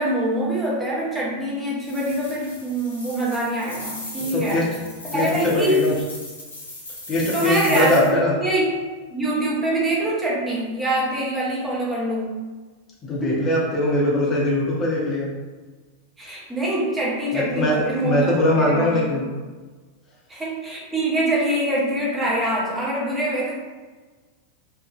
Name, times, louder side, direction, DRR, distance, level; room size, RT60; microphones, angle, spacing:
voice 1, 0.0-4.7 5.1-5.9 7.3-8.6 9.1-12.3 13.2-13.4 16.2-18.3 18.6-19.1 20.3-23.6, right 1 dB, 10° right, -5 dB, 0.8 m, -24 dB
sound 1, 1.8-8.1, left 2 dB, 70° left, 0.7 m, -37 dB
voice 2, 4.3-4.6 5.1-5.9 7.1-8.4 13.0-15.3 17.3-19.2, left 1 dB, 25° left, -5 dB, 0.7 m, -21 dB
2.9 x 2.4 x 2.3 m, 1.3 s
figure-of-eight pair, 90°, 0 cm